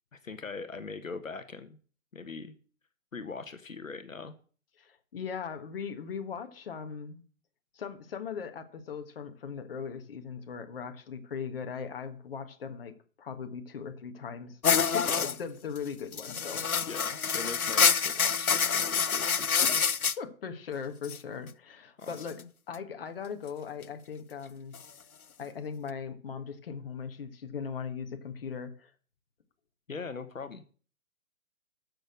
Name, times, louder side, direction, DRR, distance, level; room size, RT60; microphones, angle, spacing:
voice 1, 0.1-1.8 2.1-2.5 3.1-4.3 15.1-15.3 16.9-19.8 22.0-22.5 29.9-30.6, left 4 dB, 70° left, 11 dB, 1.4 m, -41 dB
voice 2, 4.8-7.2 7.7-16.6 19.6-19.8 20.2-22.4 22.7-24.7 25.4-28.9, left 6 dB, 45° left, 8 dB, 1.5 m, -39 dB
sound 1, 14.6-15.3 15.8-15.9 16.1-20.1 21.0-21.2 22.2-22.4 24.7-24.8, left 6 dB, 85° left, 0.7 m, -26 dB
13.0 x 6.7 x 6.3 m, 0.42 s
figure-of-eight pair, 135°, 42 cm